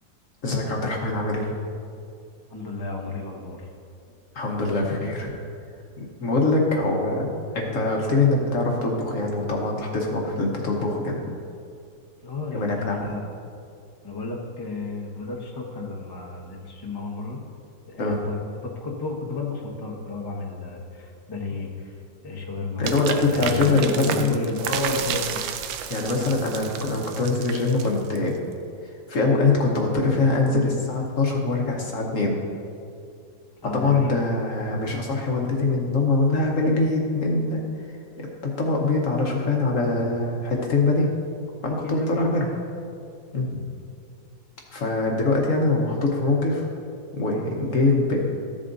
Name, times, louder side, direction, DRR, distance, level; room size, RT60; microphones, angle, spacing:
voice 1, 0.4-1.5 4.3-5.3 6.0-11.2 12.5-13.1 18.0-18.2 22.8-24.3 25.9-28.4 29.1-32.4 33.7-37.6 38.2-38.3 38.6-41.1 41.6-42.5 43.3-43.6 44.7-46.7 47.1-48.2, left 3 dB, 50° left, -1 dB, 1.2 m, -23 dB
voice 2, 2.5-3.7 12.2-13.2 14.0-17.4 17.9-18.4 18.6-22.9 23.3-25.4 33.6-34.2 41.7-42.5, left 3 dB, 20° left, -2 dB, 0.6 m, -32 dB
sound 1, 22.8-28.4, right 8 dB, 80° right, 1.3 m, -31 dB
14.0 x 7.4 x 2.6 m, 2.4 s
omnidirectional pair, 2.1 m